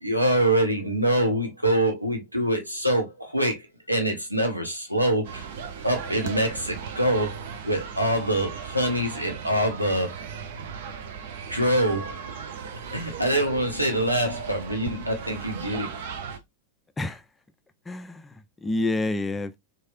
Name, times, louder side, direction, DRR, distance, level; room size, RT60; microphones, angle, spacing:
voice 1, 0.0-3.6 3.9-5.5 5.8-10.2 11.5-12.2 12.9-16.0, right 1 dB, 90° right, 0.9 m, -25 dB
sound 1, 5.2-16.4, right 7 dB, 55° right, 0.6 m, -37 dB
voice 2, 17.9-19.6, left 2 dB, 10° left, 0.4 m, -28 dB
3.2 x 2.7 x 2.6 m
figure-of-eight pair, 90°, 0 cm